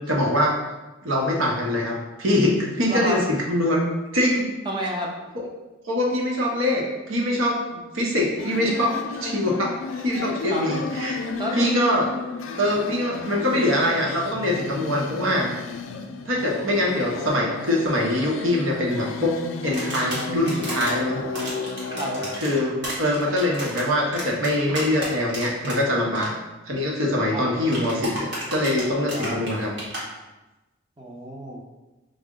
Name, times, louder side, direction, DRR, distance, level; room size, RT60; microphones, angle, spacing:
voice 1, 0.1-0.6 1.0-3.2 3.5-3.8 4.1-4.5 5.3-5.4 5.8-11.2 11.5-12.1 12.6-15.5 16.3-19.3 19.6-21.2 22.4-22.7 23.0-26.3 26.7-29.7, left 1 dB, 75° right, -2 dB, 0.9 m, -23 dB
voice 2, 4.6-5.1 10.5-10.8 11.4-11.6 21.9-22.3 27.3-27.6 29.1-29.4 31.0-31.6, equal, 20° right, -2 dB, 0.6 m, -30 dB
sound 1, 8.4-22.4, left 4 dB, 70° left, 0.4 m, -33 dB
sound 2, 19.7-20.9 21.3-25.8 26.0-26.3 27.7-30.0, right 1 dB, 55° right, 1.4 m, -33 dB
4.8 x 2.1 x 3.6 m, 1.1 s
head